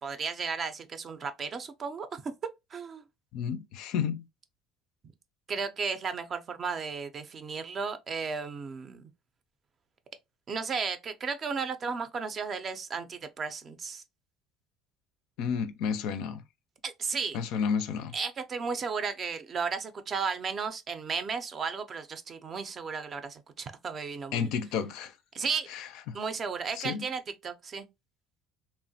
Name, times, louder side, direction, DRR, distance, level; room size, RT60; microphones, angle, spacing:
voice 1, 0.0-2.3 2.7-3.0 5.5-9.1 10.5-14.0 16.8-17.4 18.1-24.5 25.3-25.7 26.1-27.9, right 5 dB, 35° right, 0.4 m, -34 dB
voice 2, 3.3-4.3 15.4-16.4 17.3-18.1 24.3-25.1 25.7-26.2 26.8-27.0, left 7 dB, 70° left, 0.4 m, -31 dB
2.9 x 2.1 x 2.6 m
supercardioid pair, 105°, 0 cm